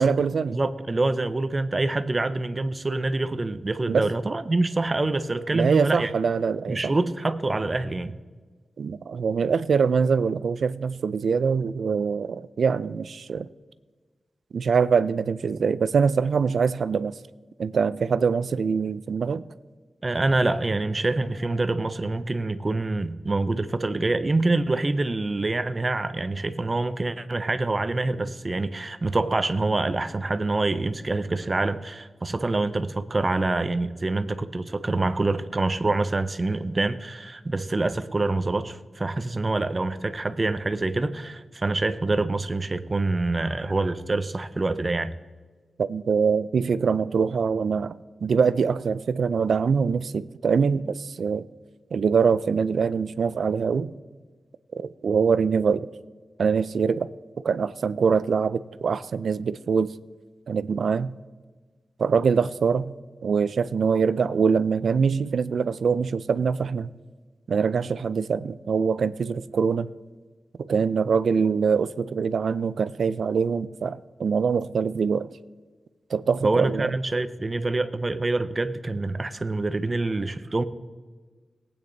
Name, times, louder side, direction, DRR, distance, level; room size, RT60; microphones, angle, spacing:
voice 1, 0.0-0.6 3.9-4.1 5.5-6.9 8.8-13.5 14.5-17.1 17.6-19.4 45.8-51.5 51.9-53.9 54.8-55.9 56.4-57.1 57.4-59.9 60.5-61.1 62.0-62.9 63.2-66.9 67.5-69.9 70.7-75.3 76.1-76.9, right 6 dB, 70° right, 16 dB, 0.4 m, -24 dB
voice 2, 0.5-6.1 6.7-8.1 20.0-45.1 76.4-80.6, right 2 dB, 25° right, 11 dB, 0.6 m, -26 dB
19.0 x 8.8 x 3.9 m, 1.4 s
wide cardioid pair, 165°, 0 cm